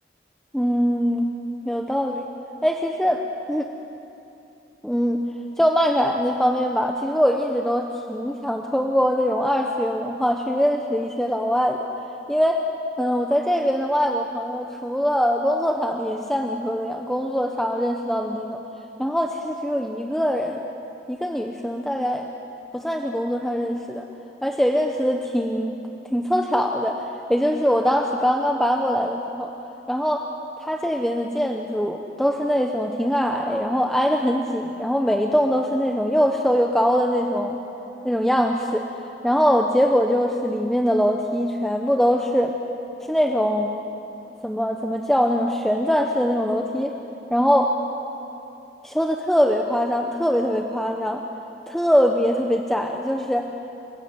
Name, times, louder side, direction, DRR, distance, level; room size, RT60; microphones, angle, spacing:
voice 1, 0.5-1.3 1.6-2.3 2.6-3.2 3.5-3.7 4.8-5.2 5.6-11.9 12.3-12.7 13.0-18.6 19.0-20.6 21.1-22.3 22.7-24.0 24.4-25.8 26.1-29.5 29.9-30.3 30.6-37.6 38.0-38.8 39.2-42.5 43.1-43.8 44.4-47.0 47.3-47.7 48.8-51.2 51.7-53.5, equal, ahead, 2 dB, 0.9 m, -22 dB
28.5 x 17.0 x 7.9 m, 2.8 s
head